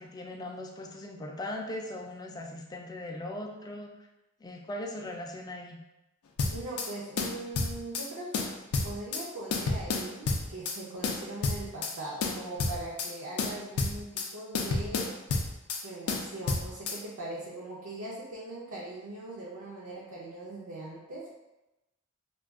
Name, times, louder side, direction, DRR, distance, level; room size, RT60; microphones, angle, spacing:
voice 1, 0.0-3.9 4.4-5.8, left 1 dB, 20° left, 1 dB, 0.3 m, -39 dB
sound 1, 6.4-6.9 7.2-8.1 8.3-9.2 9.5-10.8 11.0-11.9 12.2-13.1 13.4-14.3 14.5-15.8 16.1-17.0, left 3 dB, 90° left, 0.4 m, -30 dB
voice 2, 6.5-8.5 8.8-15.1 15.8-21.3, right 2 dB, 75° right, -5 dB, 0.5 m, -40 dB
2.3 x 2.3 x 3.5 m, 0.97 s
head